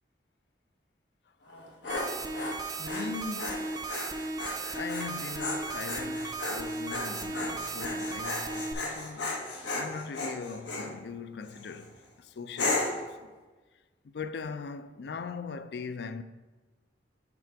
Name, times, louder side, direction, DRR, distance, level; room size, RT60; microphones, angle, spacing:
Dog, 1.5-10.9 11.5-11.9 12.6-13.1, left 2 dB, 85° left, 1.3 m, -35 dB
sound 1, 1.9-8.7, right 3 dB, 20° right, 0.4 m, -36 dB
voice 1, 2.8-3.9 4.8-9.3 9.7-13.3 14.0-16.2, left 5 dB, 70° left, 0.4 m, -40 dB
6.1 x 4.8 x 4.5 m
head